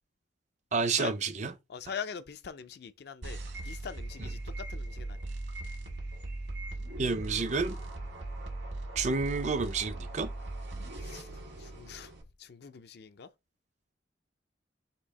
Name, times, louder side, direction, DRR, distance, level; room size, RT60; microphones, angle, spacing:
voice 1, 0.7-1.5 4.2-4.3 7.0-7.8 9.0-10.3, right 4 dB, 40° right, 0.5 m, -30 dB
voice 2, 1.7-5.2 11.0-11.3 11.6-12.1 12.4-13.3, left 6 dB, 60° left, 0.4 m, -43 dB
sound 1, 3.2-12.2, right 2 dB, 80° right, 1.6 m, -39 dB
4.4 x 2.8 x 4.1 m
head